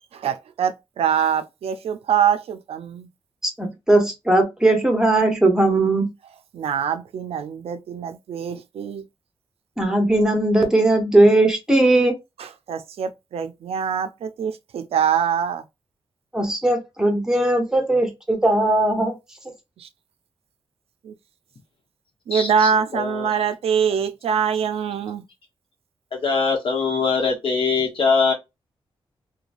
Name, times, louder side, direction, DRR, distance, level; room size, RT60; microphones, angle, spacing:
voice 1, 0.1-3.1 6.5-9.0 12.4-15.6 19.8-19.9 21.0-21.1 22.3-25.2, right 7 dB, 85° right, 0.4 m, -24 dB
voice 2, 3.4-6.1 9.8-12.1 16.3-19.2, right 2 dB, 5° right, 0.8 m, -18 dB
voice 3, 22.3-23.3 26.1-28.3, left 4 dB, 65° left, 1.1 m, -22 dB
2.9 x 2.3 x 2.5 m
wide cardioid pair, 125°, 10 cm